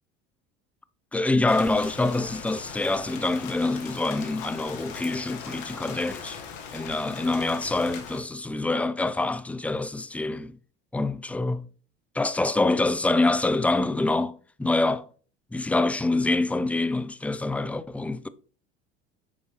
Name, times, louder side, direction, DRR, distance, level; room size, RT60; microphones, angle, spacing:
voice 1, 1.1-6.4 6.7-10.6 10.9-11.6 12.1-15.1 15.5-18.3, left 2 dB, 5° left, 0.4 m, -26 dB
Rain, 1.5-8.2, left 6 dB, 65° left, 1.6 m, -40 dB
8.6 x 5.1 x 3.2 m
hypercardioid pair, 80°, 31 cm